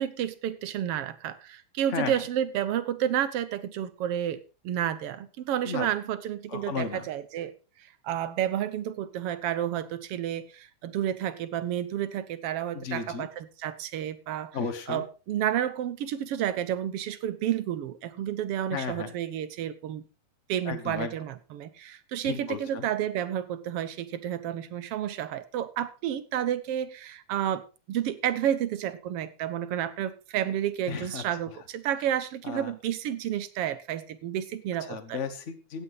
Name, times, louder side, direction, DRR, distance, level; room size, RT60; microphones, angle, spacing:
voice 1, 0.0-7.5 8.0-14.6 14.9-20.0 20.5-27.6 27.9-35.2, right 10 dB, 65° right, 13 dB, 1.6 m, -31 dB
voice 2, 6.5-7.1 12.7-13.3 14.5-15.1 18.7-19.1 20.6-21.1 22.2-22.9 30.9-31.2 32.4-32.7 34.8-35.8, left 6 dB, 75° left, 9 dB, 0.6 m, -34 dB
15.5 x 9.1 x 4.0 m, 0.32 s
omnidirectional pair, 3.4 m